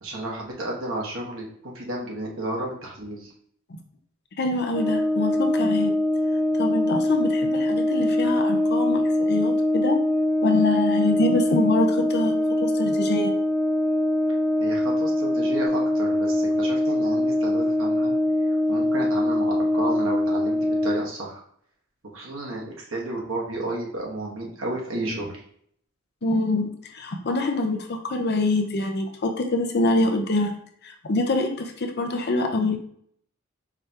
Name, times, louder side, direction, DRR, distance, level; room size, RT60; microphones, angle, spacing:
voice 1, 0.0-3.3 14.6-18.1 18.7-21.4 22.1-25.4, right 2 dB, 65° right, -2 dB, 1.3 m, -32 dB
voice 2, 4.4-6.0 6.6-10.0 10.4-13.4 26.2-30.5 30.8-32.8, left 2 dB, 50° left, 5 dB, 0.6 m, -25 dB
Brass instrument, 4.7-21.1, left 1 dB, ahead, 0.4 m, -23 dB
4.9 x 3.4 x 2.8 m, 0.64 s
head